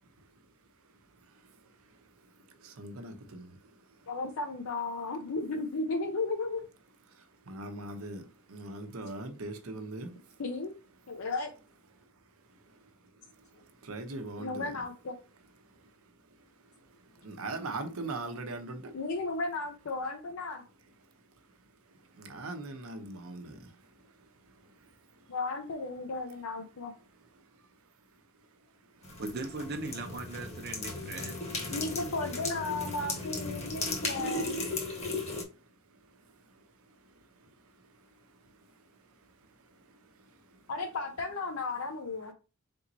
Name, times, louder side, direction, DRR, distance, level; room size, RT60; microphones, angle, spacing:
voice 1, 1.3-4.1 7.1-10.4 12.0-12.1 12.5-14.8 15.6-16.0 16.3-19.0 21.9-25.3 27.4-27.6 28.4-28.5 28.8-29.2 34.9-40.7, right 2 dB, 85° right, 0.8 m, -44 dB
voice 2, 4.1-6.6 10.4-10.8 11.1-11.5 13.5-13.6 14.4-15.2 17.3-17.4 18.9-20.6 25.3-26.9 31.7-34.6 40.7-42.3, left 3 dB, 80° left, 0.6 m, -34 dB
sound 1, 29.0-35.4, left 2 dB, 30° left, 1.0 m, -36 dB
voice 3, 29.2-31.7, right 2 dB, 50° right, 0.6 m, -39 dB
4.1 x 3.5 x 2.7 m
head